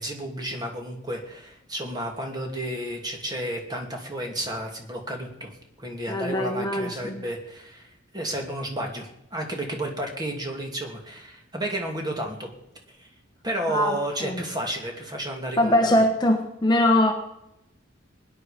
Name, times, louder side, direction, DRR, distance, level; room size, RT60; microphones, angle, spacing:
voice 1, 0.0-5.5 5.8-12.5 13.0-13.1 13.4-16.0, right 1 dB, 20° right, 2 dB, 2.6 m, -32 dB
voice 2, 6.1-7.2 13.7-14.4 15.6-17.1, left 1 dB, 20° left, 4 dB, 1.2 m, -22 dB
20.0 x 10.5 x 5.2 m, 0.83 s
head